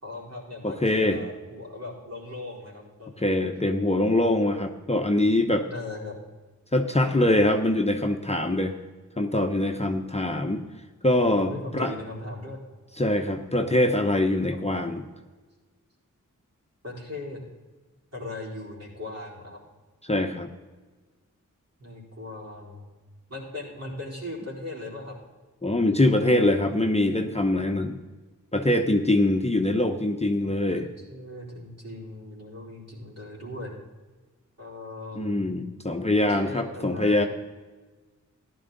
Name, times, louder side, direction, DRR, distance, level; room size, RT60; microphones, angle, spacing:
voice 1, 0.0-3.2 5.6-6.2 11.4-12.6 14.5-14.6 16.8-17.4 18.1-19.6 21.8-22.9 23.3-25.2 30.7-30.8 31.1-33.8 34.6-35.4 36.2-37.3, left 2 dB, 50° right, -4 dB, 4.5 m, -38 dB
voice 2, 0.6-1.2 3.2-5.7 6.7-8.7 9.2-10.6 11.0-11.9 13.0-15.0 20.0-20.5 25.6-28.0 28.5-30.9 35.2-37.3, left 1 dB, 20° left, 4 dB, 0.9 m, -23 dB
14.5 x 11.5 x 4.0 m, 1.3 s
wide cardioid pair, 60°, 32 cm